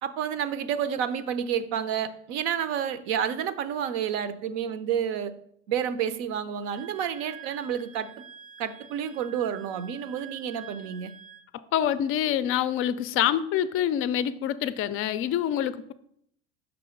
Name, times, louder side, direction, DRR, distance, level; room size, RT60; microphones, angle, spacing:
voice 1, 0.0-5.3 5.7-8.1 8.6-11.1, right 8 dB, 65° right, 13 dB, 0.7 m, -30 dB
Wind instrument woodwind instrument, 6.7-11.5, right 9 dB, 25° right, 0.5 m, -47 dB
voice 2, 11.7-15.9, left 10 dB, 40° left, 14 dB, 0.4 m, -26 dB
6.0 x 3.8 x 5.0 m, 0.68 s
supercardioid pair, 120°, 34 cm